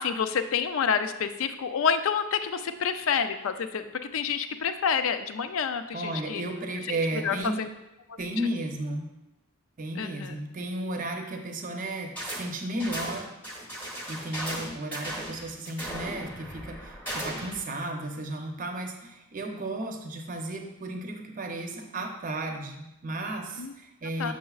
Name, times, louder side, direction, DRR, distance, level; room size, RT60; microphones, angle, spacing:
voice 1, 0.0-3.8 4.1-6.4 7.2-7.7 10.0-10.3 23.6-23.7 24.2-24.3, left 6 dB, 70° left, 10 dB, 0.4 m, -28 dB
voice 2, 5.9-7.6 8.2-9.1 9.8-13.3 13.9-24.3, right 1 dB, 40° right, 3 dB, 0.6 m, -34 dB
sound 1, 12.2-12.5 12.8-17.6, equal, 10° left, 0.9 m, -37 dB
6.8 x 6.2 x 2.4 m, 0.93 s
head